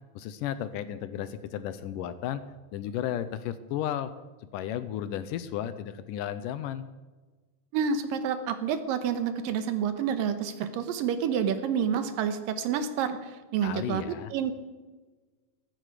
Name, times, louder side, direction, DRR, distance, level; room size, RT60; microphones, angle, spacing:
voice 1, 0.2-2.4 2.7-4.1 4.5-6.9 13.6-14.3, left 10 dB, 75° left, 13 dB, 2.1 m, -33 dB
voice 2, 7.7-13.2 13.5-14.5, right 7 dB, 80° right, 10 dB, 2.7 m, -28 dB
14.5 x 14.5 x 4.9 m, 1.3 s
omnidirectional pair, 4.1 m